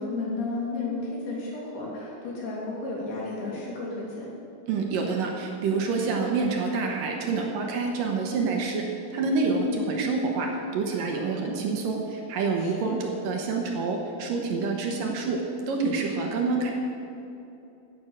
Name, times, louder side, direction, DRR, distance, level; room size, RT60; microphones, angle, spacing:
voice 1, 0.0-4.3 9.2-9.7 12.6-13.0, left 3 dB, 75° left, -5 dB, 5.1 m, -33 dB
voice 2, 4.7-8.9 9.1-16.7, right 4 dB, 70° right, 1 dB, 2.5 m, -27 dB
16.0 x 8.0 x 6.4 m, 2.8 s
omnidirectional pair, 4.5 m